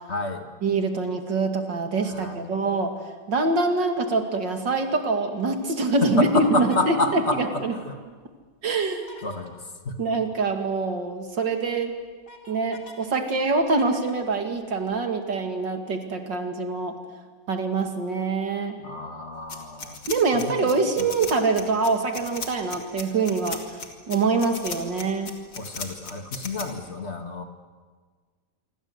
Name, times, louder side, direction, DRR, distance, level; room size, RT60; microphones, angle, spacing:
voice 1, 0.1-0.5 2.1-2.5 6.0-8.0 9.2-9.6 9.8-10.0 18.8-20.0 20.3-20.7 21.0-21.1 25.6-27.4, left 2 dB, 40° left, 6 dB, 2.1 m, -29 dB
voice 2, 0.6-3.0 3.3-7.7 8.6-9.1 10.0-11.9 12.5-17.0 17.5-18.8 20.1-23.6 24.1-25.3, right 3 dB, 80° right, 5 dB, 3.0 m, -25 dB
sound 1, 6.4-7.1 8.8-9.5 11.2-11.3 11.7-13.1 13.4-15.0, left 2 dB, 65° left, 3.5 m, -48 dB
sound 2, 19.5-26.6, left 4 dB, 85° left, 3.3 m, -35 dB
27.5 x 25.0 x 8.1 m, 1.5 s
omnidirectional pair, 1.9 m